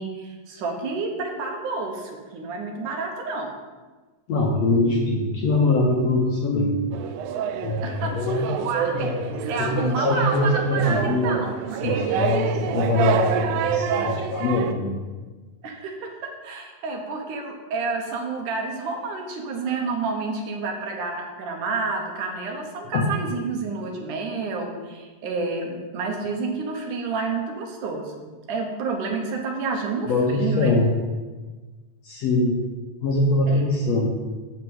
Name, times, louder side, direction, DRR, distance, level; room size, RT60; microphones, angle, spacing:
voice 1, 0.0-3.5 7.8-9.1 9.5-12.1 15.6-28.2 28.5-30.8 33.5-33.6, right 4 dB, 70° right, 2 dB, 2.5 m, -29 dB
voice 2, 4.3-6.8 7.6-8.5 8.9-11.4 11.8-15.0 22.9-23.0 30.1-30.9 32.0-32.6 33.0-34.1, left 2 dB, 65° left, -1 dB, 1.8 m, -23 dB
sound 1, 6.9-14.7, right 8 dB, 85° right, 2.4 m, -27 dB
6.8 x 6.7 x 7.8 m, 1.3 s
omnidirectional pair, 4.0 m